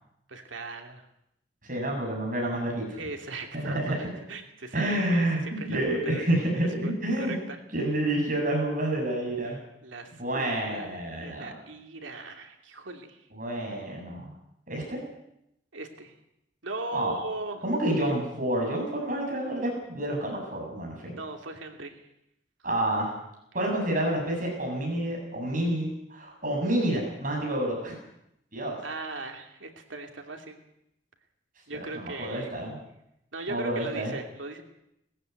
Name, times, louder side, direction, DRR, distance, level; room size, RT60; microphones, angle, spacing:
voice 1, 0.3-1.0 3.0-5.3 5.6-6.2 6.8-7.6 9.8-13.2 15.7-16.1 16.6-17.6 21.2-22.0 28.8-30.6 31.7-32.5 33.3-34.6, right 2 dB, 85° right, 4 dB, 2.9 m, -38 dB
voice 2, 1.6-3.0 3.6-4.1 4.7-7.3 7.7-9.6 10.2-11.5 13.3-14.3 14.7-15.0 16.9-17.2 17.6-21.1 22.6-23.1 23.5-28.0 28.5-28.8 31.7-32.8 33.5-34.1, right 1 dB, 45° right, 0 dB, 7.5 m, -29 dB
19.5 x 15.0 x 9.5 m, 0.80 s
head